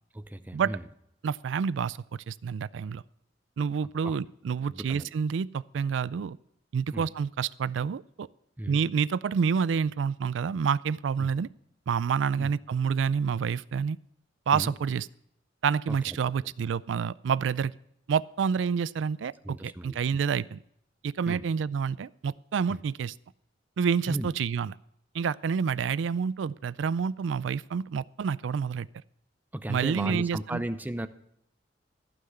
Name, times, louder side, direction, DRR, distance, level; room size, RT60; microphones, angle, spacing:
voice 1, 0.1-0.8 4.0-4.2 4.6-5.1 6.9-7.1 8.6-8.8 11.2-11.3 12.4-12.5 14.5-14.7 15.9-16.5 19.4-20.2 21.3-21.5 22.7-22.8 24.1-24.3 29.5-31.1, right 1 dB, 10° right, 11 dB, 0.5 m, -36 dB
voice 2, 1.2-2.0 2.3-3.0 3.6-6.4 6.7-8.3 8.7-11.5 11.9-14.0 14.5-15.1 15.6-17.7 18.1-20.6 21.0-23.1 23.8-24.7 25.1-28.9 29.7-30.6, right 6 dB, 80° right, 19 dB, 0.4 m, -28 dB
15.0 x 5.8 x 7.8 m, 0.74 s
head